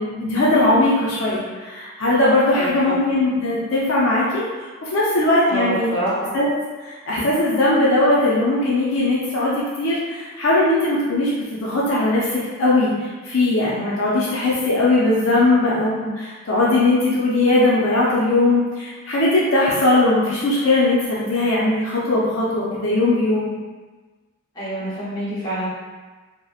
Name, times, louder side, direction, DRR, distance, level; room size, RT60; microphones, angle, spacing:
voice 1, 0.0-4.4 4.8-5.9 6.3-6.5 7.1-12.3 12.6-12.9 13.2-23.5, left 2 dB, 65° left, -7 dB, 0.5 m, -19 dB
voice 2, 5.5-6.1 24.5-25.7, right 1 dB, 20° left, -11 dB, 1.0 m, -26 dB
2.9 x 2.0 x 2.3 m, 1.3 s
head